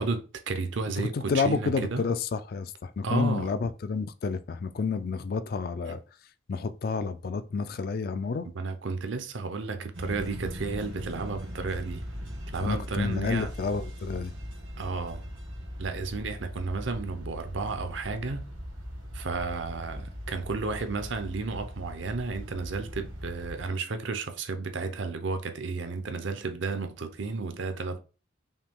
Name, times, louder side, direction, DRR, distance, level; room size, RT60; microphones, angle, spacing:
voice 1, 0.0-2.0 3.0-3.5 5.8-5.9 8.6-12.0 12.5-13.5 14.8-15.2 15.8-18.5 19.1-28.0, right 4 dB, 70° right, 0.6 m, -32 dB
voice 2, 1.0-6.0 6.5-8.5 12.6-14.3, left 4 dB, 50° left, 0.3 m, -30 dB
sound 1, 9.9-23.7, equal, 85° right, 1.7 m, -40 dB
5.5 x 2.3 x 3.6 m
head